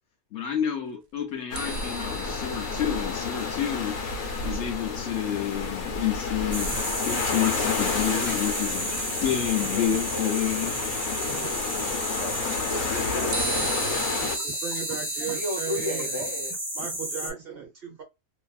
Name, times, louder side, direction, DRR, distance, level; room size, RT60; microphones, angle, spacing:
voice 1, 0.3-4.0 4.4-10.7, left 10 dB, 65° left, 0.9 m, -29 dB
sound 1, 1.5-14.4, left 5 dB, 85° left, 1.2 m, -30 dB
sound 2, 1.5-7.2 8.5-8.6 13.3-16.5, right 3 dB, 80° right, 0.3 m, -38 dB
sound 3, 6.5-17.3, right 1 dB, 15° right, 0.9 m, -32 dB
voice 2, 9.7-12.4 12.6-14.4 15.2-16.6, left 1 dB, 25° left, 0.7 m, -37 dB
voice 3, 11.9-12.4 12.7-13.9 14.4-16.2 16.8-18.0, right 7 dB, 55° right, 0.7 m, -37 dB
2.8 x 2.4 x 2.2 m
omnidirectional pair, 1.4 m